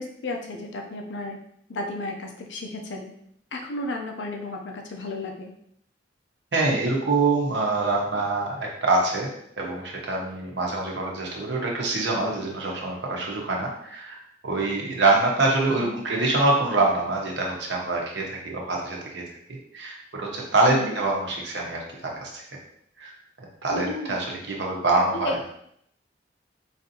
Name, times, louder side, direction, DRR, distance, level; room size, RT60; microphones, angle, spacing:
voice 1, 0.0-1.4 1.7-3.1 3.5-5.5 15.7-16.0 20.7-21.0 23.7-24.2 25.2-25.5, left 2 dB, 85° left, 2 dB, 0.5 m, -33 dB
voice 2, 6.5-9.3 9.6-14.2 14.4-19.2 19.7-22.4 23.0-23.1 23.6-25.4, right 2 dB, 70° right, -1 dB, 0.9 m, -25 dB
4.1 x 2.7 x 2.7 m, 0.70 s
head